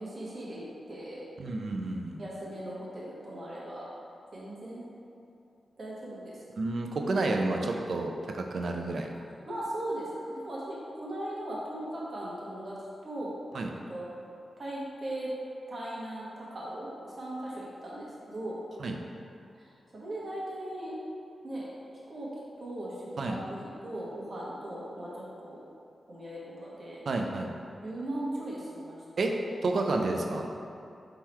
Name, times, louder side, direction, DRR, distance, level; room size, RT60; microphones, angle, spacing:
voice 1, 0.0-1.2 2.2-3.9 4.3-4.9 5.8-6.4 7.2-7.5 9.5-12.8 13.0-13.4 13.9-14.1 14.6-15.3 15.7-18.6 19.6-20.9 21.4-21.7 22.1-22.3 22.6-25.6 26.1-27.0 27.8-29.0, right 1 dB, 50° right, -6 dB, 1.1 m, -38 dB
voice 2, 1.4-2.2 6.6-9.1 13.5-13.7 18.8-19.0 23.2-23.4 27.1-27.5 29.2-29.3 29.6-30.5, right 2 dB, 65° right, 2 dB, 0.4 m, -30 dB
3.7 x 3.0 x 4.3 m, 2.6 s
cardioid pair, 85°, 0 cm